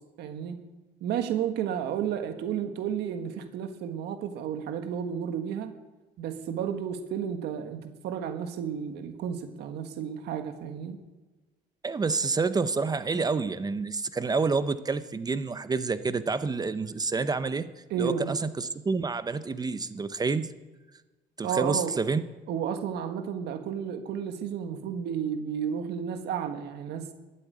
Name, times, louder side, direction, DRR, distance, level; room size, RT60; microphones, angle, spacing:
voice 1, 0.2-0.6 1.0-5.7 6.2-11.0 17.9-18.3 21.4-21.9 22.5-27.1, right 8 dB, 75° right, 7 dB, 1.5 m, -32 dB
voice 2, 11.8-17.7 18.0-20.5 21.4-22.2, right 4 dB, 25° right, 13 dB, 0.7 m, -28 dB
13.5 x 8.5 x 9.2 m, 1.2 s
cardioid pair, 110°, 17 cm